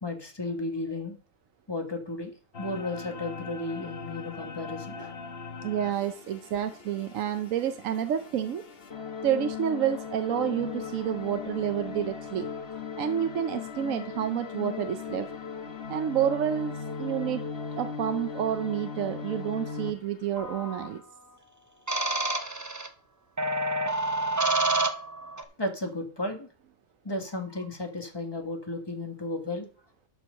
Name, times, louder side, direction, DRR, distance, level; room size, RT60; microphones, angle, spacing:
voice 1, 0.0-1.2 1.7-5.1 25.6-26.5 27.0-29.7, left 2 dB, 20° left, 4 dB, 1.5 m, -34 dB
sound 1, 2.5-21.0, left 5 dB, 50° left, 1.3 m, -38 dB
voice 2, 5.6-8.6 9.2-12.4 13.0-15.3 15.9-17.4 17.8-21.0, right 9 dB, 75° right, 8 dB, 1.1 m, -29 dB
sound 2, 20.4-20.9 21.9-22.9 23.4-25.4, right 2 dB, 20° right, 0.6 m, -28 dB
11.5 x 4.7 x 6.3 m, 0.41 s
omnidirectional pair, 1.4 m